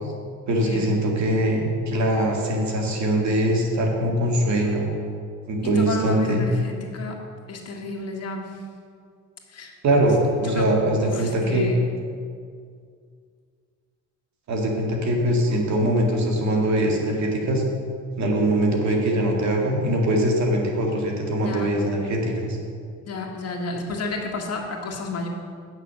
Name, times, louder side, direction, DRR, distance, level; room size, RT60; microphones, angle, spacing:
voice 1, 0.5-4.9 5.5-6.5 9.8-11.7 14.5-17.6 18.2-22.6, right 1 dB, 65° right, 0 dB, 2.1 m, -22 dB
voice 2, 5.6-7.2 7.5-8.6 9.5-9.7 10.4-10.7 11.0-11.8 21.4-21.8 23.0-25.3, left 2 dB, 55° left, 0 dB, 1.8 m, -31 dB
9.3 x 6.4 x 6.8 m, 2.2 s
cardioid pair, 90°, 30 cm